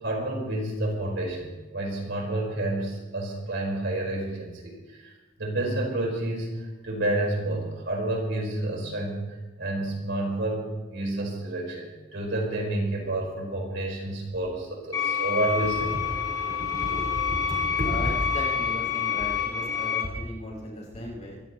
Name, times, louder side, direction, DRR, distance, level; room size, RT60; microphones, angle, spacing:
voice 1, 0.0-5.1 5.4-16.0 17.5-17.9, right 1 dB, 60° right, -1 dB, 4.7 m, -30 dB
sound 1, 14.9-20.0, left 7 dB, 20° left, 4.3 m, -28 dB
voice 2, 17.8-21.4, left 1 dB, 35° left, -3 dB, 5.1 m, -38 dB
24.5 x 16.0 x 3.1 m, 1.2 s
head